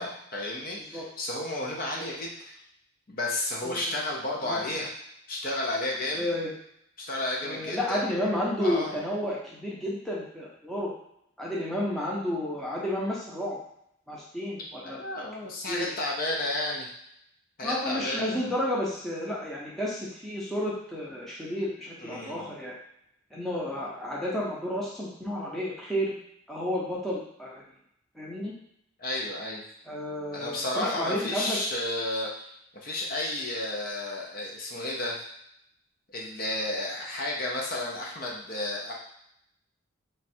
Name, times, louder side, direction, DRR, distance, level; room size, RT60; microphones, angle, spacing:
voice 1, 0.0-2.6 3.1-4.9 5.3-6.3 7.0-8.0 8.6-8.9 14.8-16.9 17.6-18.4 22.0-22.5 29.0-29.6 30.3-32.5 32.8-35.2 36.1-38.9, left 1 dB, 45° left, -2 dB, 0.6 m, -32 dB
voice 2, 3.6-3.9 4.4-4.6 6.1-6.5 7.4-10.9 11.4-13.6 14.1-15.0 15.7-15.9 17.6-22.7 23.3-26.1 26.5-27.5 28.1-28.5 29.9-31.6, left 1 dB, ahead, -6 dB, 0.7 m, -31 dB
3.2 x 2.3 x 4.3 m, 0.74 s
head